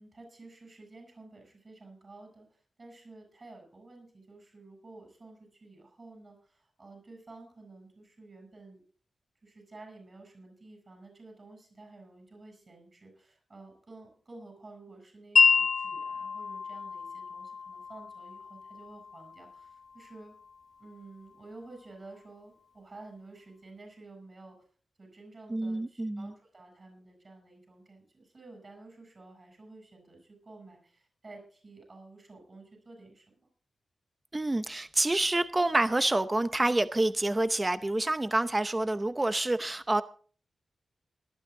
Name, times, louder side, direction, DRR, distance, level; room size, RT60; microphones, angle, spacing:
voice 1, 0.0-8.8 9.4-20.3 20.8-24.7 25.0-33.5, right 2 dB, 35° right, 7.5 m, -51 dB
Wind chime, 15.4-21.4, left 5 dB, 65° left, 1.2 m, -30 dB
voice 2, 25.5-26.3 34.3-40.0, right 2 dB, 20° right, 0.6 m, -27 dB
19.0 x 12.0 x 3.7 m
wide cardioid pair, 140°, 0 cm